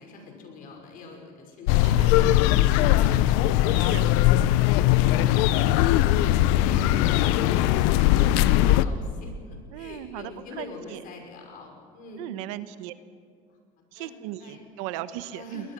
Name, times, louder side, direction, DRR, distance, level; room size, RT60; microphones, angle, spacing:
voice 1, 0.0-4.2 5.8-12.4 14.0-14.1 14.4-14.6 15.3-15.7, left 3 dB, 60° left, 2 dB, 5.8 m, -44 dB
sound 1, 1.7-8.8, left 14 dB, 80° left, 0.8 m, -20 dB
voice 2, 3.7-4.0 5.2-5.3 9.7-10.7 10.9-11.0 12.2-12.9 13.9-15.7, right 14 dB, 85° right, 13 dB, 1.1 m, -37 dB
21.0 x 20.5 x 6.2 m, 2.3 s
supercardioid pair, 115°, 16 cm